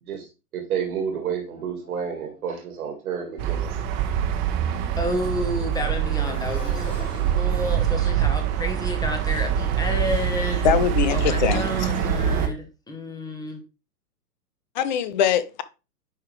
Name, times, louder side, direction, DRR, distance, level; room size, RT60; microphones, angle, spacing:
voice 1, 0.0-3.7 12.0-12.5, right 7 dB, 65° right, 1.9 m, -31 dB
Motorcycle, 1.1-11.0, left 2 dB, 85° left, 2.7 m, -46 dB
sound 1, 3.4-12.5, right 9 dB, 30° right, 1.1 m, -24 dB
voice 2, 5.0-10.7 11.1-13.6, left 1 dB, 10° left, 1.1 m, -30 dB
voice 3, 10.6-11.9 14.8-15.6, left 9 dB, 30° left, 0.5 m, -23 dB
10.0 x 3.6 x 3.2 m
figure-of-eight pair, 115°, 48 cm